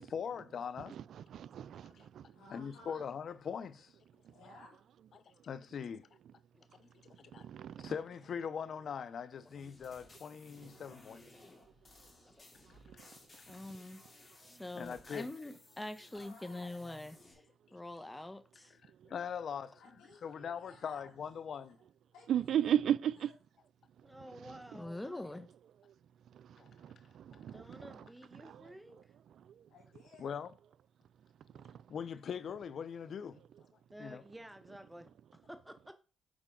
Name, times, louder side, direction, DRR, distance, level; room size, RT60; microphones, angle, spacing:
voice 1, 0.0-1.0 2.5-3.9 5.1-6.1 6.8-7.5 7.8-11.2 13.3-13.4 14.7-15.3 18.8-19.8 20.2-21.8 26.6-26.7 27.3-27.6 30.2-30.5 31.9-33.4 34.0-34.2, left 7 dB, 65° left, 0.7 m, -41 dB
voice 2, 0.9-2.2 7.4-7.9 22.3-23.3 24.5-24.6 27.1-28.0 28.3-28.6, right 10 dB, 75° right, 0.3 m, -34 dB
voice 3, 2.3-3.1 4.3-4.8 16.1-16.8 19.8-21.1 21.6-21.9 22.1-22.3 22.6-22.7 29.7-30.4, left 3 dB, 85° left, 3.6 m, -57 dB
sound 1, 9.4-17.3, left 2 dB, 40° left, 3.1 m, -60 dB
voice 4, 13.5-14.0 14.4-17.4 17.7-18.7 24.7-25.5, left 1 dB, 15° left, 1.2 m, -44 dB
voice 5, 24.0-25.0 27.3-29.2 33.9-35.1 35.5-35.9, right 1 dB, 5° right, 0.7 m, -52 dB
8.6 x 4.8 x 3.8 m
supercardioid pair, 65°, 0 cm